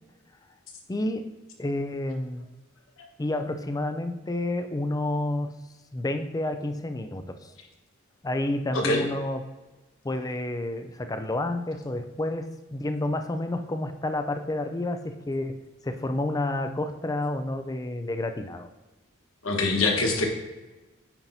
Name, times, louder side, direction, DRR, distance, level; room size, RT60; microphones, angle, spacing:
voice 1, 0.9-1.3 1.6-2.5 3.2-5.5 5.9-7.5 8.2-9.4 10.0-18.7, left 1 dB, 20° left, 7 dB, 0.4 m, -30 dB
voice 2, 8.7-9.0 19.4-20.3, left 2 dB, 90° left, 1 dB, 1.3 m, -24 dB
8.8 x 5.7 x 2.7 m, 1.2 s
head